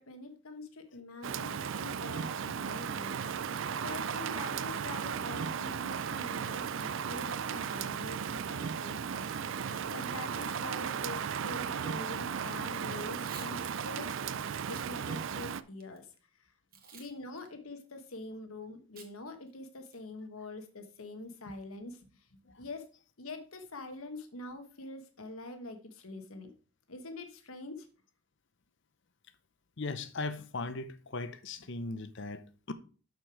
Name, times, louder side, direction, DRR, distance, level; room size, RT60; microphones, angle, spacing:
voice 1, 0.0-3.1 3.8-14.1 14.7-16.1 16.9-22.0 22.6-22.8 23.2-26.5 26.9-27.9, left 2 dB, 70° left, 1.3 m, -45 dB
Rain, 1.2-15.6, right 7 dB, 60° right, 0.4 m, -36 dB
Packing tape duct tape / Tearing, 13.1-13.5 14.0-14.1 14.6-14.9 15.4-16.0 16.7-17.1 17.4-17.5 19.0-19.1 19.5-19.6 19.9-20.2, right 7 dB, 40° right, 1.3 m, -50 dB
voice 2, 29.8-32.7, left 3 dB, 55° left, 0.7 m, -39 dB
6.7 x 6.3 x 4.7 m
head